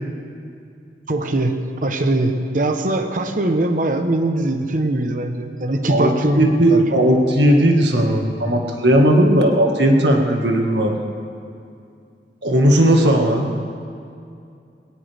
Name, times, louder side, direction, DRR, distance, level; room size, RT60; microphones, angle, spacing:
voice 1, 1.1-6.8, right 1 dB, 50° right, 6 dB, 1.1 m, -21 dB
voice 2, 5.9-11.0 12.4-13.5, right 1 dB, 85° right, 2 dB, 1.8 m, -16 dB
20.0 x 17.5 x 3.5 m, 2.5 s
head